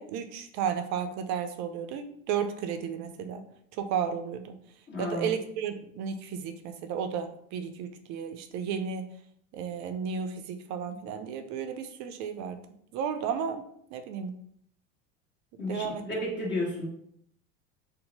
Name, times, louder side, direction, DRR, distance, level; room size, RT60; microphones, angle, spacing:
voice 1, 0.0-3.4 3.7-4.6 5.0-9.1 9.5-12.6 12.9-13.6 13.9-14.3 15.7-16.0, right 7 dB, 50° right, 8 dB, 0.5 m, -33 dB
voice 2, 4.9-5.3 15.6-16.9, left 1 dB, 30° left, -3 dB, 1.3 m, -32 dB
2.8 x 2.1 x 4.0 m, 0.69 s
hypercardioid pair, 90°, 37 cm